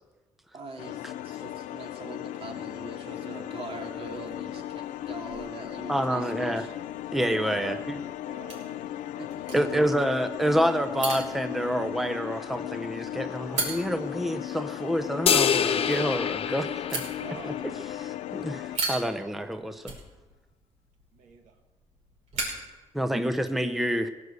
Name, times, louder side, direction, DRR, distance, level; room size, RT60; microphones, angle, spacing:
voice 1, 0.5-6.7 9.2-9.3 9.6-9.8 17.2-17.3, right 3 dB, 50° right, 2 dB, 2.7 m, -43 dB
sound 1, 0.8-18.8, left 13 dB, 85° left, 0.5 m, -36 dB
sound 2, 3.9-23.5, right 3 dB, 70° right, 5.3 m, -40 dB
voice 2, 5.9-6.7 7.1-8.0 9.5-17.0 17.4-17.5 18.0-19.8 22.9-24.1, equal, ahead, 7 dB, 0.7 m, -28 dB
voice 3, 7.4-8.9 9.6-9.8 10.3-10.8 17.2-17.6 21.1-21.5, right 6 dB, 90° right, 5 dB, 1.7 m, -46 dB
sound 3, 15.3-17.8, left 7 dB, 50° left, 0.8 m, -26 dB
17.5 x 8.1 x 8.1 m, 1.2 s
cardioid pair, 125°, 13 cm